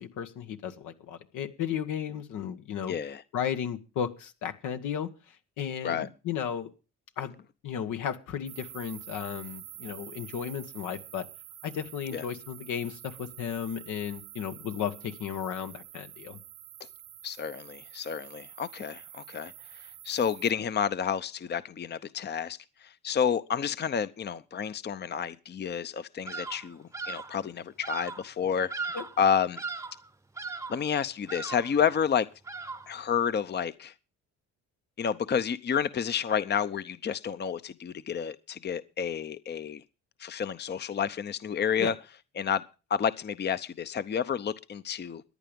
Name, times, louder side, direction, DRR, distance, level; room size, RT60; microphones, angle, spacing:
voice 1, 0.0-2.9 3.3-5.1 5.6-6.7 7.2-11.3 11.6-16.4 28.9-29.0 41.8-41.9, left 8 dB, 85° left, 1.5 m, -34 dB
voice 2, 2.9-3.2 5.8-6.1 12.1-12.2 17.2-19.5 20.0-22.6 23.0-29.6 30.7-32.3 32.9-33.9 35.0-39.8 40.2-41.9 42.4-42.6 42.9-45.2, left 7 dB, 35° left, 0.7 m, -30 dB
sound 1, 8.5-20.5, right 13 dB, 80° right, 1.0 m, -47 dB
Bird vocalization bird call bird song, 26.3-26.7 26.9-27.4 27.8-28.3 28.7-29.2 29.5-30.0 30.4-30.9 31.3-31.8 32.4-33.0, right 4 dB, 10° right, 0.8 m, -38 dB
15.0 x 10.5 x 5.2 m
cardioid pair, 90°, 30 cm